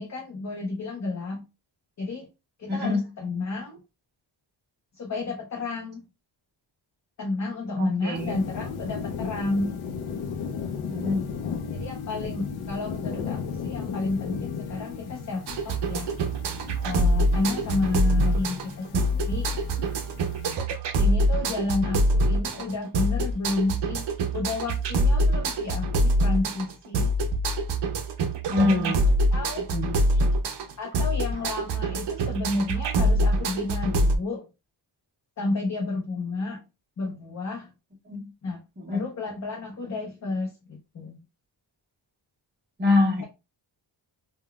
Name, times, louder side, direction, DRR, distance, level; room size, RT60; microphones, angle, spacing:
voice 1, 0.0-1.4 2.0-2.3 2.6-3.8 4.9-6.0 7.2-9.7 11.7-16.1 16.8-19.5 21.0-24.1 24.3-27.1 28.8-29.0 29.3-29.6 30.8-34.5 35.4-36.6 37.0-37.7 38.4-38.6 38.9-41.2, left 3 dB, 35° left, 0.6 m, -31 dB
voice 2, 2.7-3.0 7.8-8.4 10.9-11.3 28.5-29.0 29.7-29.9 38.1-38.3 38.9-39.0 42.8-43.2, left 2 dB, 20° right, 0.6 m, -24 dB
sound 1, 8.1-20.6, left 6 dB, 90° left, 0.6 m, -35 dB
sound 2, 15.5-34.2, right 1 dB, 60° right, 0.6 m, -24 dB
3.6 x 2.2 x 2.2 m
wide cardioid pair, 170°, 48 cm